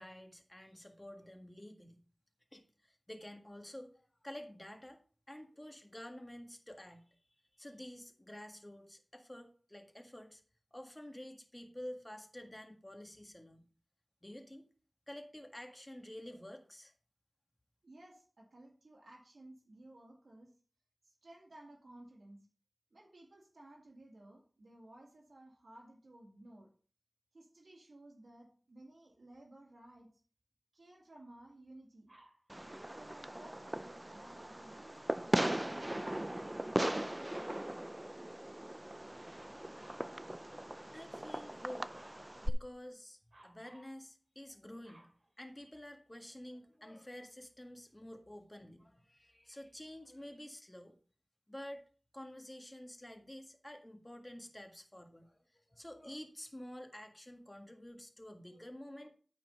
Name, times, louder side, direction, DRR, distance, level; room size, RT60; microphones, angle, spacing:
voice 1, 0.0-2.0 2.5-5.0 5.3-7.2 7.6-10.4 10.7-13.7 14.2-14.7 15.1-16.9 40.9-41.9 42.4-45.1 45.4-50.9 51.5-51.8 52.1-59.1, left 1 dB, 20° left, 4 dB, 1.6 m, -50 dB
voice 2, 17.8-20.6 21.0-22.5 22.9-26.7 27.3-30.1 30.7-32.1 32.6-37.3, right 1 dB, 75° right, -2 dB, 2.1 m, -56 dB
Dog, 32.1-32.4 36.3-37.1 39.3-40.1 41.5-42.3 43.3-43.9 44.5-46.0 46.7-46.8, right 1 dB, 55° right, 3.0 m, -62 dB
Fireworks, 32.5-42.5, right 1 dB, 20° right, 0.5 m, -38 dB
12.5 x 4.5 x 5.3 m, 0.41 s
wide cardioid pair, 50°, 0 cm